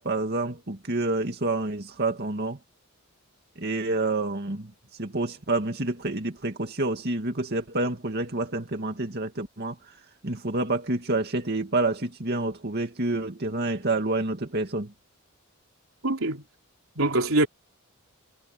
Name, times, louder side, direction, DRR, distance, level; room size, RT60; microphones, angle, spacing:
voice 1, 0.0-2.6 3.6-4.7 5.0-9.8 10.2-14.9, right 2 dB, 50° right, 2.3 m, -28 dB
voice 2, 16.0-16.4 17.0-17.5, right 2 dB, 85° right, 3.4 m, -23 dB
head